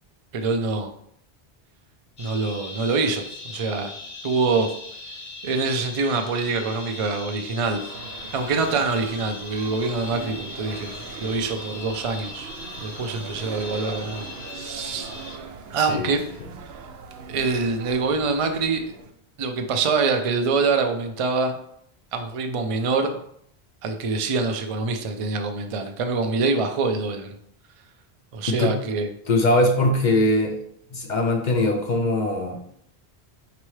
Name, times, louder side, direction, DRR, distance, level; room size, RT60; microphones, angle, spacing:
voice 1, 0.3-0.9 2.2-3.9 4.2-4.7 5.4-7.8 8.3-10.9 11.2-12.5 12.8-15.1 15.7-16.2 17.3-18.8 19.4-21.6 22.1-23.2 23.8-27.4 28.3-29.1, right 4 dB, 50° right, 5 dB, 0.4 m, -25 dB
sound 1, 2.2-15.4, left 3 dB, 75° left, 1.1 m, -39 dB
sound 2, 7.5-19.1, right 5 dB, 80° right, 0.8 m, -40 dB
voice 2, 28.5-28.8 29.3-30.6 30.9-32.6, left 1 dB, 55° left, 3 dB, 0.6 m, -21 dB
4.5 x 3.0 x 3.1 m, 0.68 s
omnidirectional pair, 1.1 m